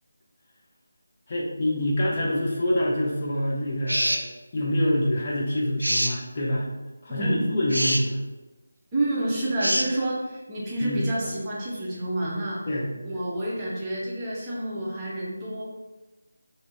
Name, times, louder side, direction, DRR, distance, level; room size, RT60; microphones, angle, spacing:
voice 1, 1.3-4.2 4.5-6.7 7.0-8.2 10.8-11.1 12.7-12.9, left 1 dB, 30° left, -5 dB, 0.6 m, -26 dB
sound 1, 3.9-4.3 5.8-6.2 7.7-8.0 9.6-9.9, right 1 dB, 80° right, 0.5 m, -24 dB
voice 2, 8.9-12.6 13.0-15.6, right 1 dB, 15° right, -7 dB, 0.8 m, -29 dB
4.7 x 2.7 x 2.6 m, 1.1 s
figure-of-eight pair, 160°, 0 cm